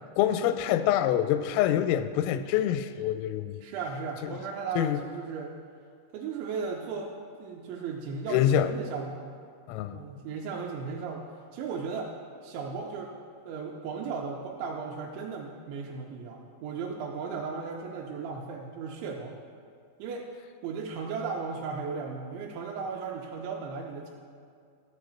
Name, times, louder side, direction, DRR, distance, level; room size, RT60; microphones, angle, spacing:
voice 1, 0.2-3.6 4.2-4.3 4.8-5.0 8.3-8.7 9.7-10.0, left 11 dB, 85° left, 11 dB, 3.1 m, -26 dB
voice 2, 3.6-5.5 6.1-9.4 9.9-11.2 11.5-12.1 12.4-13.1 13.5-19.4 20.0-20.3 20.6-24.1, right 5 dB, 80° right, 1 dB, 2.8 m, -36 dB
13.5 x 4.7 x 7.1 m, 2.2 s
omnidirectional pair, 5.8 m